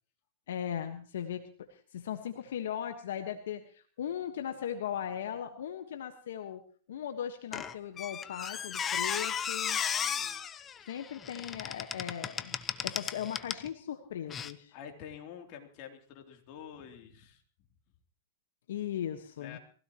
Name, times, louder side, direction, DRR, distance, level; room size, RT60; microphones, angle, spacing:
voice 1, 0.5-6.6 6.9-9.8 10.9-14.7 18.7-19.6, left 9 dB, 80° left, 6 dB, 1.4 m, -38 dB
Squeak, 7.5-13.7 14.3-14.5, left 7 dB, 25° left, 0.9 m, -35 dB
voice 2, 9.9-10.4 14.7-17.4 19.4-19.6, left 8 dB, 50° left, 3 dB, 3.3 m, -48 dB
22.5 x 16.5 x 3.1 m, 0.43 s
hypercardioid pair, 130°, 0 cm